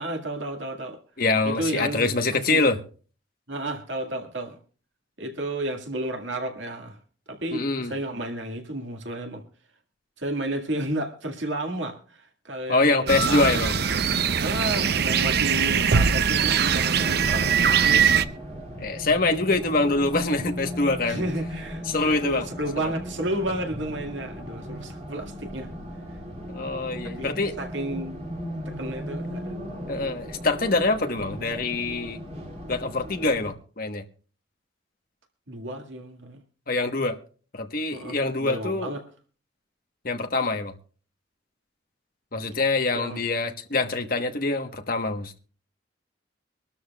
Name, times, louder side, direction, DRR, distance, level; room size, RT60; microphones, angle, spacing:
voice 1, 0.0-1.0 1.4-2.6 3.5-4.6 5.2-7.0 7.3-9.4 10.2-13.6 14.4-18.2 21.1-25.7 27.2-28.2 28.8-29.6 35.5-36.4 37.9-39.0 42.9-43.2, right 1 dB, 80° right, 2.0 m, -32 dB
voice 2, 1.2-2.8 7.5-7.9 12.7-13.7 15.7-15.9 18.8-21.2 21.9-22.5 22.8-22.9 26.5-27.5 29.9-32.2 32.7-34.0 36.7-37.2 37.5-38.9 40.0-40.7 42.3-45.4, left 3 dB, 50° left, 1.2 m, -25 dB
sound 1, 13.1-18.3, right 7 dB, 55° right, 0.6 m, -22 dB
Race car auto racing, 16.9-33.5, equal, 35° right, 2.5 m, -37 dB
24.5 x 12.5 x 2.3 m
head